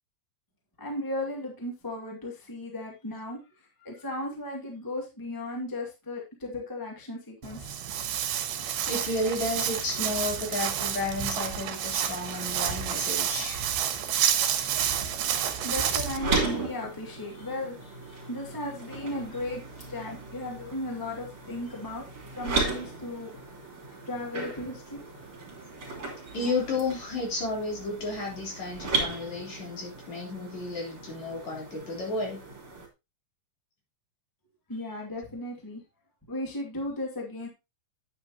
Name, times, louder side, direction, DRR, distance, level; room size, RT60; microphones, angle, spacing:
voice 1, 0.8-3.4 3.8-7.7 15.6-22.0 22.3-23.3 24.0-25.0 34.7-35.8 36.3-37.5, left 1 dB, 10° left, -1 dB, 1.4 m, -36 dB
Walk footsteps, 7.4-16.2, right 9 dB, 90° right, 3.1 m, -29 dB
voice 2, 8.9-13.6 26.3-32.4, left 2 dB, 50° left, -2 dB, 4.6 m, -32 dB
sound 1, 14.8-32.9, right 3 dB, 35° right, 3.4 m, -36 dB
9.4 x 8.3 x 2.9 m, 0.24 s
omnidirectional pair, 4.3 m